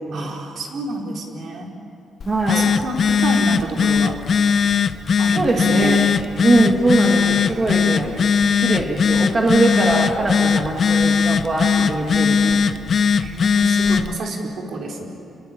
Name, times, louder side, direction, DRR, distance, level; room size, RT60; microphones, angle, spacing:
voice 1, 0.1-1.7 2.5-4.2 5.2-6.0 7.4-8.3 9.7-9.8 13.2-15.1, right 2 dB, 50° right, 0 dB, 4.7 m, -29 dB
Telephone, 2.2-14.1, left 6 dB, 40° left, 0.8 m, -19 dB
voice 2, 2.3-2.6 5.3-6.1 6.4-8.1 8.6-12.6, right 2 dB, 20° right, -1 dB, 2.4 m, -21 dB
29.0 x 22.0 x 9.1 m, 2.6 s
cardioid pair, 170°, 0 cm